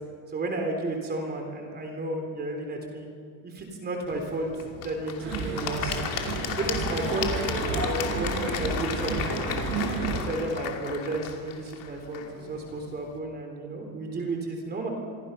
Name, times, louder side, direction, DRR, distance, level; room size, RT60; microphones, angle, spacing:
voice 1, 0.3-3.1 3.4-4.5 4.8-6.0 6.6-7.3 7.7-9.7 10.1-14.9, right 2 dB, 25° right, 3 dB, 3.5 m, -32 dB
Applause / Crowd, 4.1-13.1, left 8 dB, 60° left, 2.6 m, -35 dB
sound 1, 5.2-10.2, right 4 dB, 65° right, 7.3 m, -31 dB
26.0 x 23.5 x 5.7 m, 2.2 s
cardioid pair, 155°, 39 cm